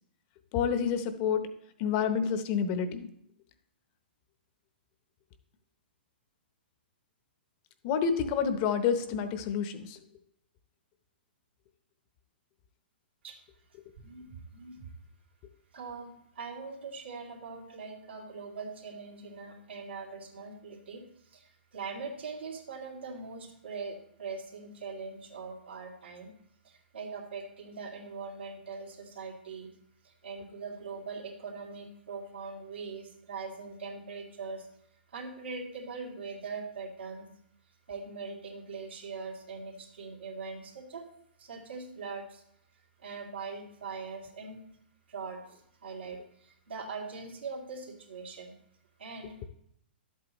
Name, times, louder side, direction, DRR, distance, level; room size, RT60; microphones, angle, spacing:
voice 1, 0.5-1.5 1.8-3.1 7.8-10.0, left 7 dB, 40° left, 10 dB, 0.9 m, -28 dB
voice 2, 14.0-14.9 15.7-26.3 26.6-29.7 30.0-34.7 35.1-37.3 37.9-41.0 41.4-42.4 43.0-44.6 45.1-48.6 49.0-49.4, right 4 dB, 80° right, -1 dB, 2.3 m, -42 dB
11.5 x 8.1 x 3.1 m, 0.73 s
hypercardioid pair, 125°, 6 cm